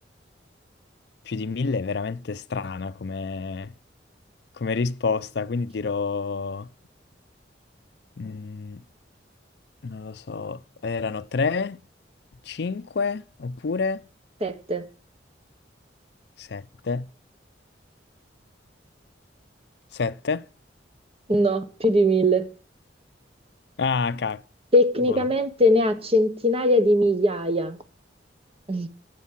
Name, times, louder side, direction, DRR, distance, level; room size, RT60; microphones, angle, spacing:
voice 1, 1.3-3.7 4.6-6.7 8.2-8.8 9.8-11.8 12.5-14.0 16.4-17.1 19.9-20.4 23.8-24.4 25.1-25.3, left 4 dB, 65° left, 0.5 m, -28 dB
voice 2, 14.4-14.8 21.3-22.5 24.7-27.8 28.7-28.9, equal, 30° right, 1.1 m, -21 dB
8.4 x 8.1 x 7.4 m
head